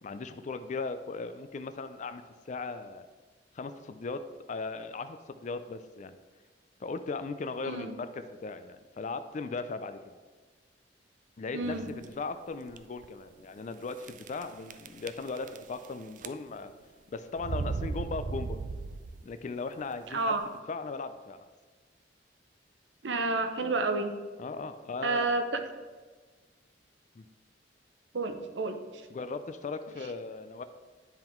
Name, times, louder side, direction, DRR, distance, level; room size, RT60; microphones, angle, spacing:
voice 1, 0.0-3.1 3.5-4.2 4.5-6.1 6.8-10.1 11.4-16.7 17.1-18.6 19.2-20.3 20.7-21.4 24.4-25.3 27.2-27.3 29.1-30.6, left 4 dB, 40° left, 10 dB, 0.4 m, -38 dB
voice 2, 7.6-7.9 11.5-11.9 20.1-20.4 23.0-24.1 25.0-25.6 28.1-29.1, right 3 dB, 85° right, 7 dB, 0.8 m, -30 dB
sound 1, 11.6-12.1 12.7-12.8 13.0-13.1 14.0-14.4 14.7-15.9 16.2-16.7 17.4-19.3, right 4 dB, 45° right, 0.3 m, -36 dB
9.8 x 3.7 x 4.4 m, 1.4 s
head